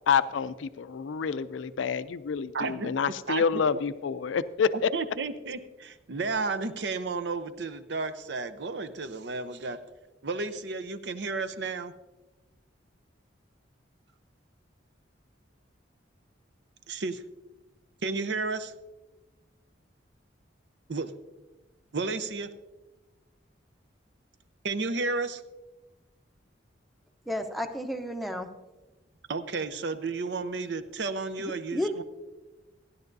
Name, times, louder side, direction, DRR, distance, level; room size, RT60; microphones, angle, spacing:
voice 1, 0.1-4.7, left 6 dB, 85° left, 14 dB, 0.4 m, -28 dB
voice 2, 2.5-3.8 4.7-9.8 10.2-11.9 16.9-17.2 18.0-18.7 20.9-21.1 21.9-22.5 24.6-25.4 29.3-32.0, right 3 dB, 65° right, 10 dB, 0.7 m, -32 dB
voice 3, 27.3-28.5 31.4-32.0, equal, ahead, 6 dB, 0.7 m, -32 dB
15.5 x 11.0 x 2.6 m, 1.1 s
head